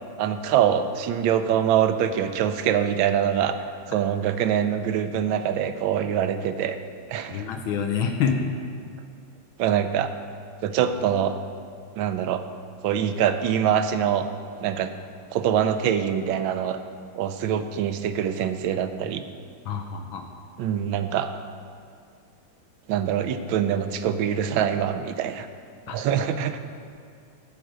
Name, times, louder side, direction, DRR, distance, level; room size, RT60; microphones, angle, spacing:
voice 1, 0.2-3.6 3.9-6.8 7.1-7.5 9.6-10.1 10.6-11.4 12.0-12.4 12.8-14.3 14.6-14.9 15.3-16.8 17.2-19.2 20.6-21.3 22.9-25.5 25.9-26.6, right 9 dB, 75° right, 9 dB, 1.3 m, -24 dB
voice 2, 7.3-8.6 19.6-20.2 25.9-26.0, left 6 dB, 80° left, 3 dB, 1.5 m, -27 dB
12.5 x 4.9 x 7.8 m, 2.3 s
omnidirectional pair, 2.3 m